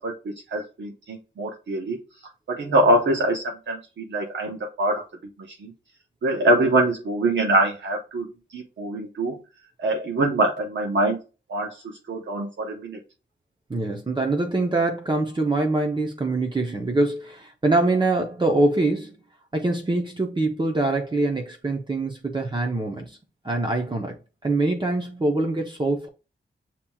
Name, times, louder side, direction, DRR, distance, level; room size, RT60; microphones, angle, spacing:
voice 1, 0.0-2.0 2.5-5.0 5.5-5.7 6.2-8.3 8.5-9.4 9.8-11.2 11.5-13.0, right 1 dB, 80° right, 0.9 m, -24 dB
voice 2, 13.7-19.2 19.5-23.2 23.4-26.1, right 2 dB, 25° right, 0.7 m, -24 dB
7.1 x 2.9 x 2.3 m
wide cardioid pair, 115°, 19 cm